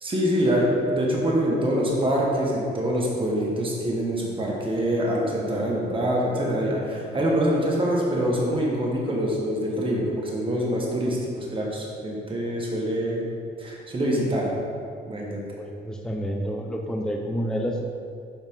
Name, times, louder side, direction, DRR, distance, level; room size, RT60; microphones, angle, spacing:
voice 1, 0.0-13.2 13.6-14.5 15.1-15.4, equal, 25° right, -3 dB, 1.4 m, -25 dB
voice 2, 15.6-17.9, equal, 5° left, 1 dB, 0.5 m, -29 dB
7.3 x 4.9 x 3.8 m, 2.4 s
cardioid pair, 90°, 20 cm